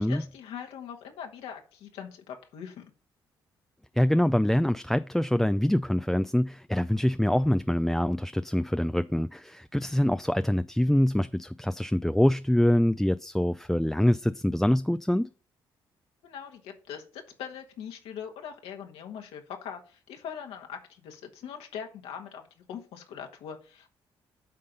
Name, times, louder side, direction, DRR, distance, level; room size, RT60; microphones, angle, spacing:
voice 1, 0.0-2.8 16.2-24.0, left 8 dB, 80° left, 1.5 m, -42 dB
voice 2, 4.0-15.3, left 1 dB, 5° left, 0.3 m, -25 dB
9.4 x 3.8 x 5.3 m
supercardioid pair, 55°, 10 cm